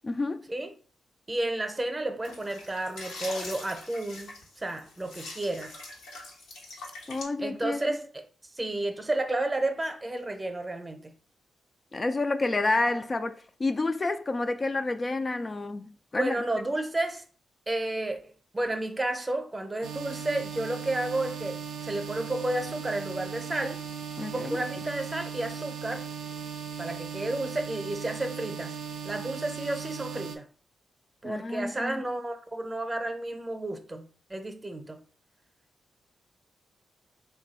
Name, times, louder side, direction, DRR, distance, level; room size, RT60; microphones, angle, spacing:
voice 1, 0.0-0.4 7.1-8.0 11.9-16.7 24.2-24.6 31.2-32.0, left 2 dB, 40° left, 0.3 m, -29 dB
voice 2, 1.3-5.8 7.4-8.3 8.5-11.1 16.2-17.2 17.7-23.8 24.2-26.1 26.8-28.8 29.0-30.5 31.2-35.0, right 2 dB, 25° right, 0.7 m, -32 dB
sound 1, 2.2-7.2, left 2 dB, 90° left, 0.9 m, -43 dB
sound 2, 19.8-30.4, right 7 dB, 85° right, 0.4 m, -38 dB
2.9 x 2.3 x 4.1 m
supercardioid pair, 45°, 0 cm